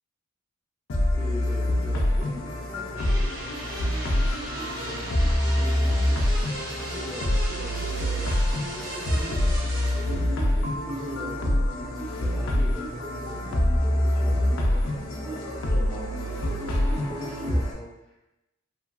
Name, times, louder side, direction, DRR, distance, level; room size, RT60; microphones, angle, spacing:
sound 1, 0.9-17.7, left 1 dB, 70° left, 0.4 m, -26 dB
voice 1, 1.1-3.9 4.2-5.0 5.5-6.0 7.0-10.3 10.9-11.6 12.1-14.8 15.2-18.4, equal, 5° left, -8 dB, 0.4 m, -43 dB
sound 2, 3.0-17.6, right 1 dB, 75° right, 0.8 m, -37 dB
3.0 x 2.3 x 2.4 m, 0.96 s
head